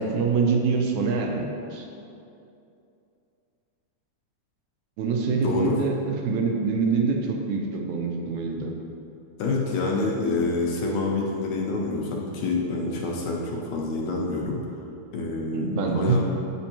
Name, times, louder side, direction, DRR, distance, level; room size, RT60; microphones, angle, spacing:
voice 1, 0.0-1.9 5.0-8.7 15.5-16.2, right 4 dB, 80° right, 1 dB, 2.0 m, -25 dB
voice 2, 5.4-5.8 9.4-14.8 15.1-16.2, left 3 dB, 75° left, -2 dB, 1.9 m, -27 dB
8.7 x 5.2 x 2.8 m, 2.7 s
omnidirectional pair, 3.5 m